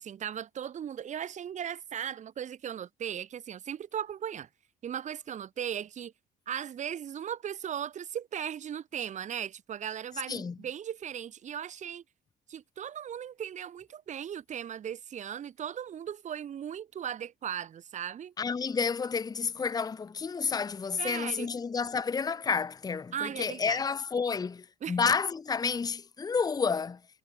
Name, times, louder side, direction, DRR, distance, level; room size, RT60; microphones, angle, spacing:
voice 1, 0.0-4.5 4.8-6.1 6.5-12.0 12.5-18.3 21.0-21.5 23.1-23.8 24.8-25.0, right 9 dB, 45° right, 1.5 m, -37 dB
voice 2, 18.4-27.0, left 5 dB, 20° left, 0.9 m, -30 dB
cardioid pair, 110°, 17 cm